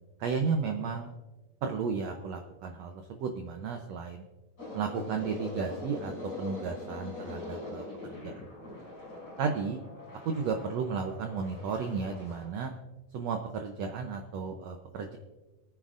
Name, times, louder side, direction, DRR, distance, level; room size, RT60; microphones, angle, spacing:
voice 1, 0.2-1.1 1.6-4.2 4.7-6.1 6.4-7.8 8.2-8.8 9.4-9.8 10.2-12.7 13.1-15.2, right 5 dB, 85° right, 4 dB, 1.5 m, -33 dB
sound 1, 4.6-12.5, left 2 dB, 25° left, 5.6 m, -43 dB
24.0 x 9.6 x 2.5 m, 1.1 s
omnidirectional pair, 4.1 m